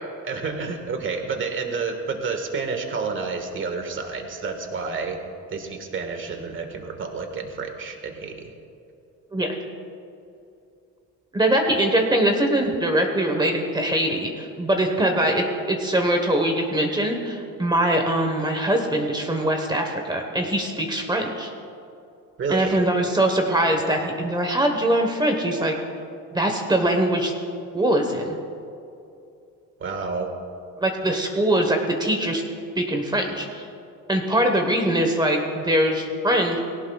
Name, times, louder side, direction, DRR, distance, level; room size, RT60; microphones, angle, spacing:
voice 1, 0.2-5.2 5.5-8.5 22.4-22.8 29.8-30.4, right 4 dB, 35° right, 5 dB, 1.6 m, -29 dB
voice 2, 11.3-21.5 22.5-25.7 26.3-27.3 27.7-28.3 30.8-32.4 32.8-33.7 34.1-36.6, right 1 dB, 15° right, 3 dB, 1.1 m, -22 dB
19.5 x 17.5 x 2.3 m, 2.6 s
cardioid pair, 140°, 33 cm